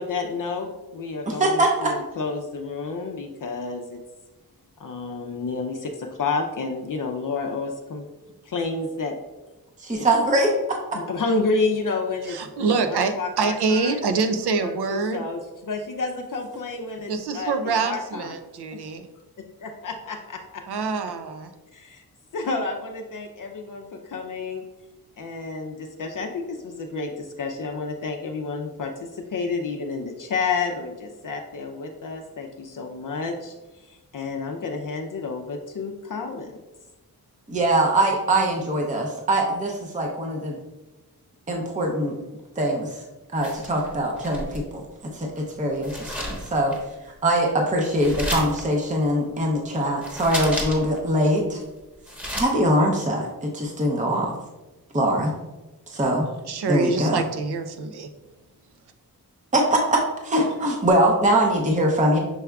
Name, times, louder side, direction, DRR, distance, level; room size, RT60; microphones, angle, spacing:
voice 1, 0.0-0.7 0.9-4.0 4.8-8.1 8.4-9.1 9.9-10.1 10.9-14.1 14.6-17.6 17.8-18.3 19.6-20.6 21.7-22.0 22.3-24.6 25.2-33.5 33.8-36.5, left 4 dB, 55° left, 2 dB, 0.5 m, -30 dB
voice 2, 1.3-1.9 9.8-10.5 37.5-40.6 41.5-42.2 42.6-42.9 43.3-44.8 45.1-46.7 47.2-51.6 52.3-54.3 54.9-55.3 55.9-56.3 56.7-57.2 59.5-62.2, right 1 dB, 20° right, 0 dB, 0.6 m, -22 dB
voice 3, 12.3-15.2 17.1-19.1 20.7-21.5 56.5-58.1, right 4 dB, 80° right, 7 dB, 0.5 m, -25 dB
sound 1, 43.4-44.7 45.8-46.8 48.0-48.6 50.0-51.0 51.3-51.4 51.8-52.5, left 1 dB, 5° right, 1.0 m, -32 dB
6.1 x 3.4 x 2.3 m, 1.1 s
wide cardioid pair, 90°, 38 cm